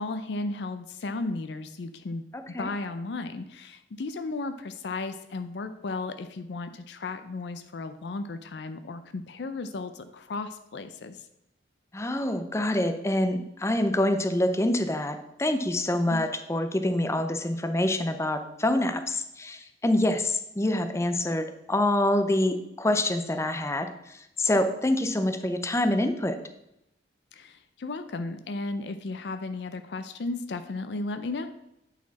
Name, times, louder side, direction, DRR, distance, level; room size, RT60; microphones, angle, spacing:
voice 1, 0.0-2.2 2.6-11.2 16.1-16.2 27.3-31.5, left 3 dB, 70° left, 9 dB, 0.5 m, -34 dB
voice 2, 2.3-2.7 11.9-26.4, left 1 dB, 15° left, 8 dB, 0.5 m, -26 dB
8.7 x 4.1 x 4.1 m, 0.83 s
head